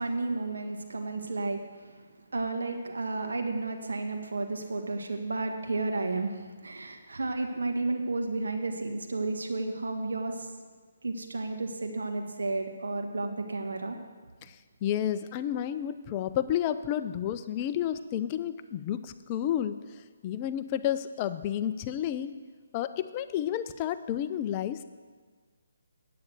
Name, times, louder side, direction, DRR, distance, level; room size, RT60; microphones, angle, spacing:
voice 1, 0.0-1.6 2.3-10.5 11.0-14.0, right 3 dB, 80° right, 4 dB, 1.8 m, -32 dB
voice 2, 14.8-19.8 20.2-22.3 22.7-24.8, left 10 dB, 30° left, 12 dB, 0.5 m, -31 dB
9.5 x 8.5 x 8.2 m, 1.5 s
hypercardioid pair, 150°, 0 cm